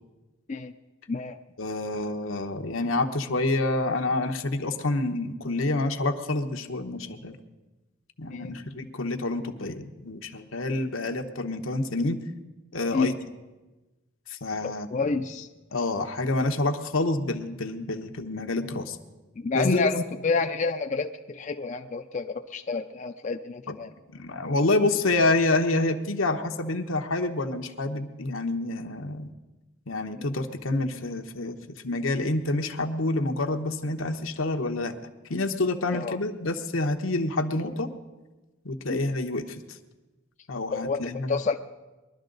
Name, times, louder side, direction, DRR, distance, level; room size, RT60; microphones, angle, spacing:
voice 1, 1.6-7.4 8.2-12.2 12.7-13.1 14.3-15.1 15.7-19.0 19.5-19.9 24.1-29.3 29.9-31.6 31.8-34.9 35.3-37.9 38.6-39.6 40.5-41.4, left 2 dB, 80° left, 6 dB, 1.0 m, -28 dB
voice 2, 14.6-15.5 19.4-23.9 30.2-30.4 35.9-36.2 38.9-39.0 40.7-41.6, left 4 dB, 35° left, 6 dB, 0.4 m, -29 dB
21.5 x 12.0 x 3.9 m, 1.1 s
head